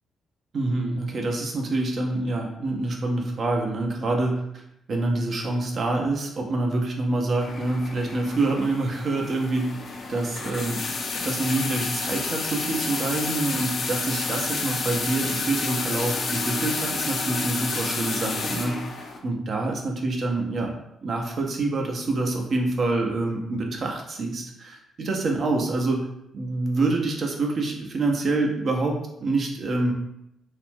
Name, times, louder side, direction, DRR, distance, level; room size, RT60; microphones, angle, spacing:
voice 1, 0.5-4.4 4.9-9.7 10.1-10.8 11.1-20.7 21.0-26.0 26.3-29.9, right 2 dB, 50° right, 1 dB, 0.6 m, -26 dB
sound 1, 7.4-19.2, left 4 dB, 50° left, 0.4 m, -30 dB
2.4 x 2.0 x 3.5 m, 0.79 s
figure-of-eight pair, 40°, 0 cm